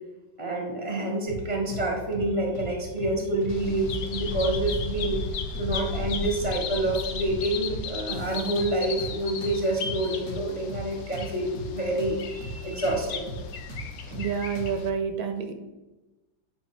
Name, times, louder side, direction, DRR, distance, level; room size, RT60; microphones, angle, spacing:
voice 1, 0.4-5.2 5.6-13.3, right 1 dB, 20° left, 0 dB, 0.8 m, -28 dB
sound 1, 1.3-1.9 2.1-2.3 2.5-3.6 3.8-4.0 4.3-5.3 5.5-5.7 6.0-7.0 7.3-7.4 7.7-9.1 9.4-12.1 12.4-12.6 12.8-14.9, right 1 dB, 40° left, 1.6 m, -37 dB
Bird vocalization bird call bird song, 3.5-14.9, left 5 dB, 70° left, 0.8 m, -35 dB
voice 2, 14.1-15.5, right 6 dB, 70° right, 6 dB, 1.4 m, -29 dB
8.9 x 3.4 x 5.9 m, 1.1 s
omnidirectional pair, 2.4 m